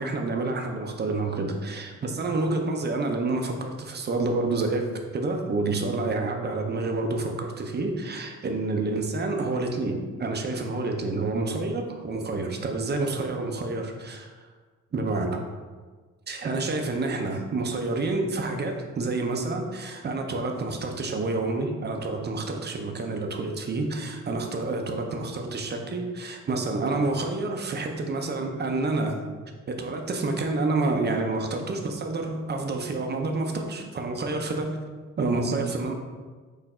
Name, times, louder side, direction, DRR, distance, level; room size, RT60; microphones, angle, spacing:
voice 1, 0.0-4.9 5.1-14.3 14.9-15.4 16.3-29.2 29.7-34.8 35.2-35.9, right 3 dB, 35° right, 3 dB, 0.7 m, -28 dB
4.3 x 2.6 x 4.3 m, 1.4 s
cardioid pair, 90°, 30 cm